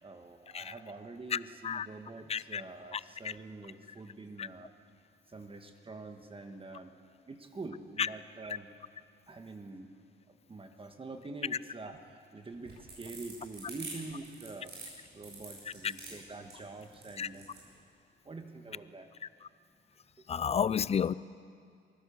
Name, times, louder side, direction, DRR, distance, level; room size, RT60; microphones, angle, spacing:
voice 1, 0.0-4.7 5.3-7.0 7.3-8.7 9.3-9.9 10.3-17.7 18.2-19.1 20.2-20.3, right 3 dB, 25° right, 6 dB, 1.5 m, -46 dB
voice 2, 2.3-2.6 2.9-3.0 4.4-4.5 8.0-8.1 17.2-17.3 20.3-21.1, left 7 dB, 30° left, 19 dB, 0.5 m, -30 dB
sound 1, 12.5-17.7, right 3 dB, 55° right, 7.5 m, -46 dB
23.5 x 16.0 x 7.1 m, 2.3 s
cardioid pair, 90°, 20 cm